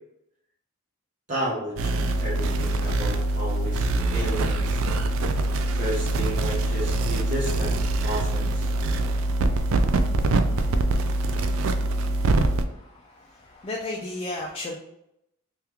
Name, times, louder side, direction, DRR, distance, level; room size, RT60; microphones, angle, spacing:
voice 1, 1.3-4.8 5.7-8.7, right 1 dB, 35° right, -7 dB, 0.8 m, -32 dB
sound 1, 1.8-12.6, right 2 dB, 60° right, 0.3 m, -24 dB
voice 2, 12.6-14.8, left 2 dB, 25° left, 0 dB, 0.3 m, -34 dB
2.9 x 2.3 x 3.4 m, 0.81 s
head